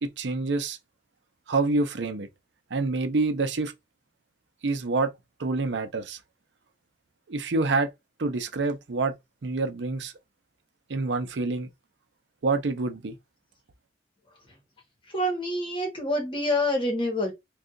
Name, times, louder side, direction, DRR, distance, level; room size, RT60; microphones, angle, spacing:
voice 1, 0.0-0.8 1.5-2.3 2.7-3.7 4.6-5.1 5.4-6.2 7.3-7.9 8.2-9.2 9.4-10.1 10.9-11.7 12.4-13.2, right 3 dB, 80° right, 0.6 m, -27 dB
voice 2, 15.1-17.3, left 1 dB, 30° left, 1.2 m, -27 dB
2.7 x 2.4 x 3.6 m
head